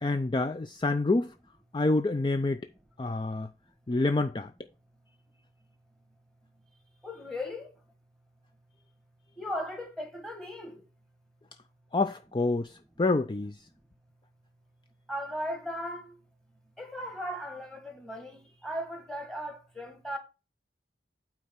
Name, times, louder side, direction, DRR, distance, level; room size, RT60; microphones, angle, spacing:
voice 1, 0.0-1.3 1.7-2.6 3.0-3.5 3.9-4.5 11.9-13.6, left 2 dB, 25° left, 0.4 m, -27 dB
voice 2, 7.0-7.7 9.4-10.8 15.1-16.1 16.8-20.2, equal, 5° left, 1.8 m, -37 dB
8.8 x 4.5 x 5.4 m
head